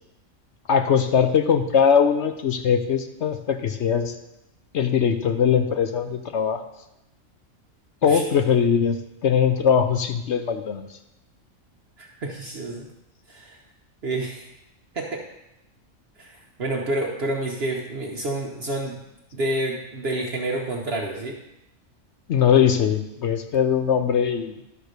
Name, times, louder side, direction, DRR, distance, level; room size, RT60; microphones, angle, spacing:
voice 1, 0.7-4.1 4.7-6.6 8.0-10.8 22.3-24.6, left 7 dB, 65° left, 7 dB, 0.9 m, -21 dB
voice 2, 12.0-12.9 13.3-13.6 14.0-14.5 14.9-15.3 16.2-19.0 19.3-21.4, right 1 dB, 50° right, -1 dB, 1.1 m, -29 dB
12.0 x 4.5 x 6.6 m, 0.88 s
omnidirectional pair, 1.4 m